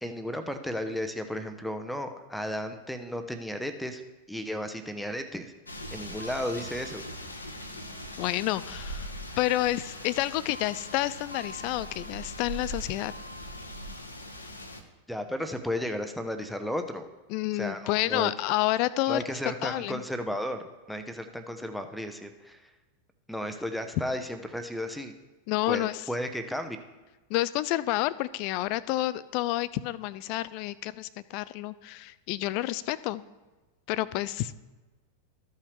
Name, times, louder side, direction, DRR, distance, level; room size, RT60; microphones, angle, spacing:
voice 1, 0.0-4.0 4.3-5.5 5.9-7.0 15.1-17.1 17.5-18.3 19.1-22.7 23.3-25.1 25.7-26.8, equal, ahead, 7 dB, 0.8 m, -34 dB
sound 1, 5.7-14.8, equal, 80° left, 0.9 m, -40 dB
voice 2, 8.2-9.1 9.4-13.1 17.3-19.2 19.6-20.0 25.5-26.0 27.3-33.2 33.9-34.5, left 16 dB, 45° left, 18 dB, 0.4 m, -29 dB
14.0 x 5.7 x 3.1 m, 1.2 s
figure-of-eight pair, 90°, 0 cm